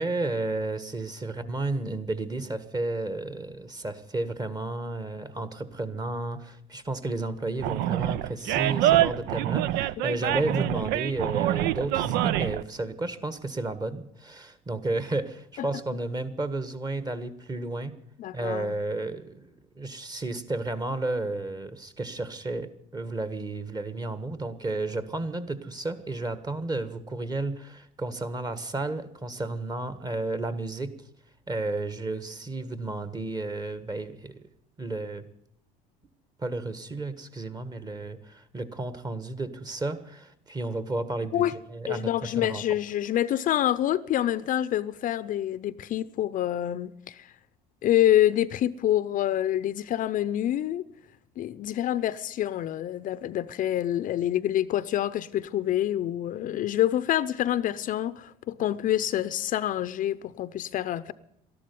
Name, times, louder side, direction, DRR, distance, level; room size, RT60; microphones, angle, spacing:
voice 1, 0.0-18.0 18.3-30.9 31.5-34.5 34.8-35.2 36.4-42.6, right 2 dB, 20° right, 1.6 m, -32 dB
Animal, 7.6-12.6, right 13 dB, 70° right, 0.6 m, -25 dB
voice 2, 18.2-18.7 41.3-41.5 41.9-47.3 47.8-50.8 51.4-61.1, left 12 dB, 50° left, 0.6 m, -27 dB
13.0 x 11.5 x 9.5 m
supercardioid pair, 95°, 17 cm